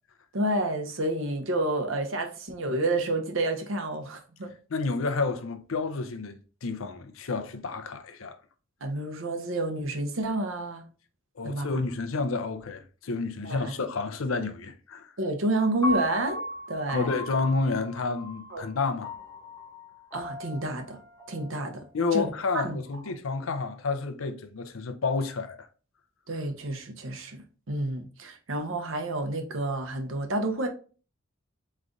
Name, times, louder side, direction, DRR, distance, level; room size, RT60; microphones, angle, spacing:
voice 1, 0.3-4.5 8.8-10.8 11.4-11.7 13.4-13.8 15.2-16.4 16.7-17.1 18.5-18.6 20.1-21.0 21.3-21.8 22.1-22.8 26.3-27.4 27.7-30.7, right 1 dB, 70° right, 0.8 m, -29 dB
voice 2, 4.7-8.4 11.4-15.1 16.9-19.1 21.9-25.7, left 4 dB, 80° left, 0.6 m, -30 dB
Piano, 15.8-22.0, equal, 20° left, 0.9 m, -37 dB
3.9 x 3.2 x 3.7 m
head